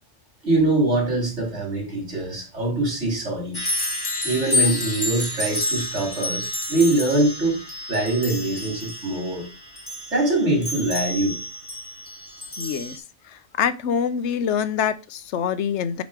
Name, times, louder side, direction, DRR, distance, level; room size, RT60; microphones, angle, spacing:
voice 1, 0.4-3.6 4.2-7.6 7.9-9.5 10.1-11.4, right 2 dB, 80° right, 3.3 m, -23 dB
sound 1, 3.5-13.0, left 2 dB, 20° left, 1.1 m, -29 dB
voice 2, 12.6-13.0 13.6-16.0, left 7 dB, 85° left, 1.0 m, -25 dB
8.2 x 3.0 x 4.8 m
omnidirectional pair, 1.2 m